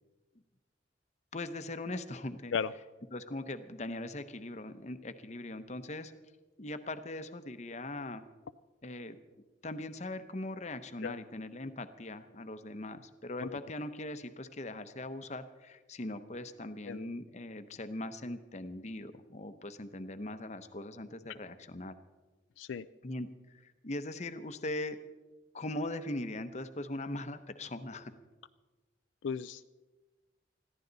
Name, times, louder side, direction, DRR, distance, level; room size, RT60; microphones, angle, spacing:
voice 1, 1.3-2.5 3.1-6.1 6.6-8.2 8.8-9.2 9.6-21.9 23.0-25.0 25.5-28.1, left 1 dB, 35° left, 10 dB, 0.8 m, -40 dB
voice 2, 29.2-29.6, left 6 dB, 85° left, 13 dB, 0.4 m, -35 dB
21.0 x 14.5 x 4.0 m, 1.2 s
head